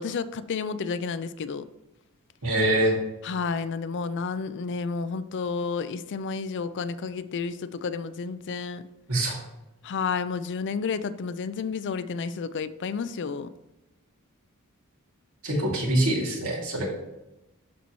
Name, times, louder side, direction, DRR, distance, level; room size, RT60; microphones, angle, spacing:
voice 1, 0.0-1.6 3.2-8.8 9.8-13.5, left 5 dB, 55° left, 13 dB, 0.4 m, -31 dB
voice 2, 2.4-3.0 9.1-9.4 15.4-16.8, right 1 dB, 70° right, -3 dB, 2.4 m, -24 dB
12.0 x 4.1 x 3.1 m, 0.97 s
head